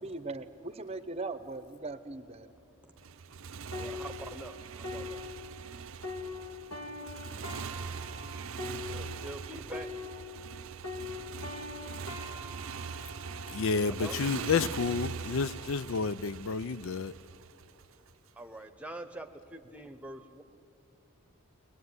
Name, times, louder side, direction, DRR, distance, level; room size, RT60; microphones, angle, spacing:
voice 1, 0.0-2.5, right 3 dB, 30° right, 0.8 m, -39 dB
Motorcycle, 3.0-18.1, right 6 dB, 70° right, 0.6 m, -42 dB
sound 1, 3.7-10.6 10.8-14.4 15.1-15.3, left 3 dB, 85° left, 3.0 m, -43 dB
voice 2, 3.7-5.2 8.9-9.9 13.9-14.2 18.4-20.4, right 1 dB, 5° right, 1.0 m, -44 dB
voice 3, 13.5-17.1, left 5 dB, 70° left, 0.4 m, -30 dB
22.5 x 20.5 x 9.6 m
head